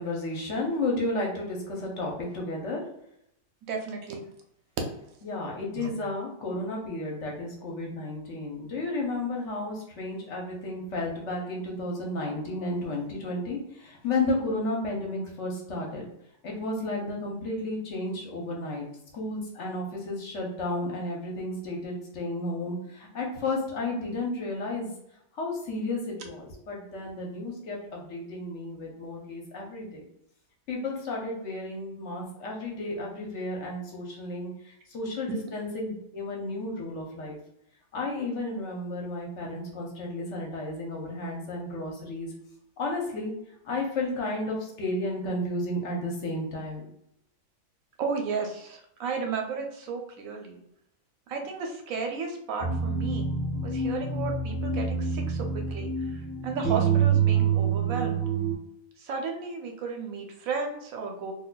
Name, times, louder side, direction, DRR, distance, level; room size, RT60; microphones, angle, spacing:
voice 1, 0.0-2.8 5.2-16.1 16.4-18.9 19.1-24.9 25.4-30.0 30.7-37.4 37.9-42.3 42.8-43.3 43.6-46.9, left 2 dB, 60° left, -1 dB, 1.0 m, -32 dB
voice 2, 3.6-4.2 5.8-5.9 48.0-50.6 51.3-53.3 53.6-58.2 59.0-61.3, right 5 dB, 75° right, 3 dB, 1.1 m, -34 dB
sound 1, 52.6-58.6, right 6 dB, 40° left, 1.0 m, -26 dB
4.1 x 2.6 x 2.2 m, 0.76 s
omnidirectional pair, 1.5 m